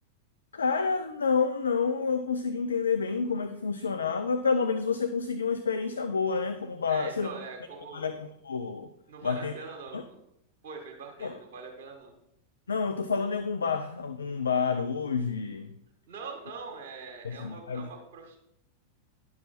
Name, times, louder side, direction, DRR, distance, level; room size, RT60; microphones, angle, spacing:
voice 1, 0.5-7.3 7.9-8.9 9.2-9.5 9.9-10.0 11.2-11.3 12.7-15.7 17.2-17.9, left 5 dB, 70° left, 8 dB, 0.5 m, -29 dB
voice 2, 6.9-8.1 9.1-10.2 10.6-12.1 16.1-18.4, right 4 dB, 55° right, 1 dB, 1.7 m, -43 dB
10.5 x 7.1 x 4.3 m, 0.79 s
figure-of-eight pair, 90°, 0 cm